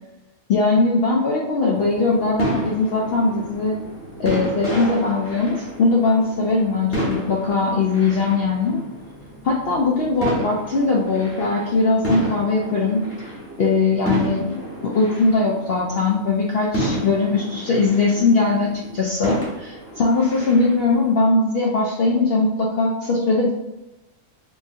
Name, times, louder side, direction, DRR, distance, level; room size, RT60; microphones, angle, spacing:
voice 1, 0.5-3.8 4.2-8.8 9.4-13.0 13.6-23.5, left 3 dB, 70° left, -3 dB, 0.5 m, -20 dB
sound 1, 1.7-21.1, right 1 dB, 10° left, 0.7 m, -31 dB
3.6 x 2.6 x 2.6 m, 0.97 s
omnidirectional pair, 1.5 m